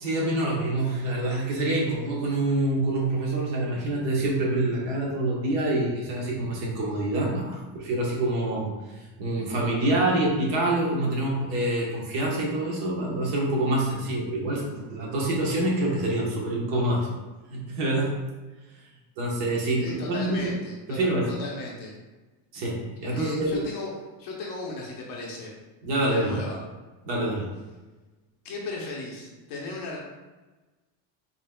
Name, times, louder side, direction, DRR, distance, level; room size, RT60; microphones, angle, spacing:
voice 1, 0.0-8.7 9.0-17.1 17.5-18.1 19.2-20.5 20.9-21.3 22.5-23.7 25.8-26.4 27.0-27.4, right 1 dB, 60° right, -3 dB, 1.3 m, -26 dB
voice 2, 19.8-21.0 21.3-21.9 23.1-25.5 26.0-26.6 28.4-30.0, left 2 dB, 45° left, -3 dB, 0.9 m, -36 dB
4.0 x 3.9 x 2.2 m, 1.2 s
cardioid pair, 175°, 50 cm